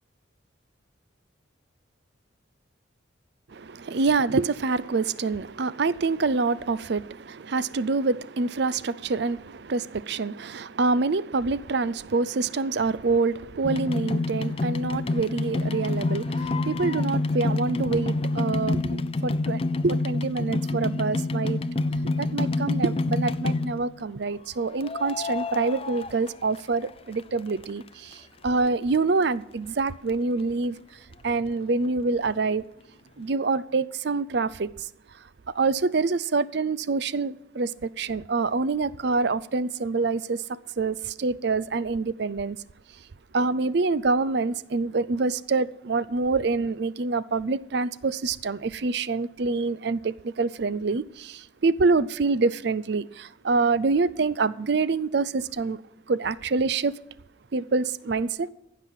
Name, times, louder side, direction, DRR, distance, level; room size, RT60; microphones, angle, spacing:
voice 1, 3.5-21.6 22.0-30.8 31.2-32.7 33.2-34.9 35.5-42.6 43.3-55.8 56.1-56.9 57.5-58.5, right 3 dB, 55° right, 0.5 m, -26 dB
sound 1, 13.6-24.0 24.8-26.9 27.2-28.1 28.7-28.8 28.9-29.0 29.2-29.3 29.8-29.9 30.1-30.2, left 2 dB, 30° left, 0.4 m, -27 dB
15.5 x 6.2 x 7.4 m
head